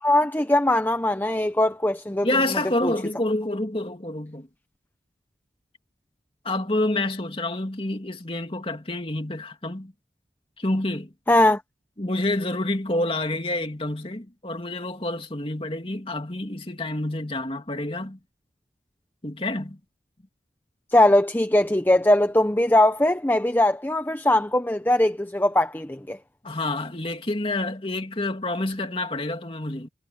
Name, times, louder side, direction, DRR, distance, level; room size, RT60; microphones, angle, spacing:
voice 1, 0.0-2.3 2.8-2.9 11.3-11.6 20.9-26.2, left 1 dB, 10° left, 0.8 m, -20 dB
voice 2, 2.2-4.5 6.4-9.9 10.6-11.1 12.0-18.2 19.2-19.8 26.4-29.9, left 2 dB, 30° left, 2.5 m, -28 dB
head